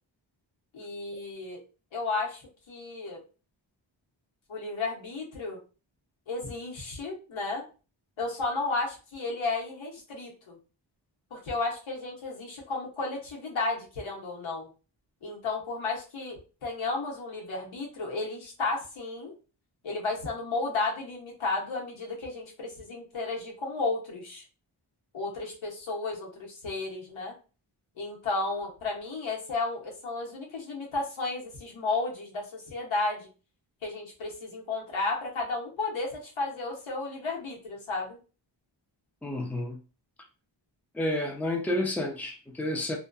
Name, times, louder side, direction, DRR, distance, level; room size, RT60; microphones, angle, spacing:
voice 1, 0.7-1.6 1.9-3.2 4.5-5.6 6.3-7.6 8.2-10.6 11.3-14.7 15.2-19.3 19.8-24.4 25.1-27.3 28.0-33.3 33.8-38.2, left 3 dB, 75° left, 1.1 m, -33 dB
voice 2, 39.2-39.8 40.9-43.0, left 1 dB, 5° left, 0.6 m, -30 dB
2.5 x 2.3 x 2.3 m
cardioid pair, 55°, 48 cm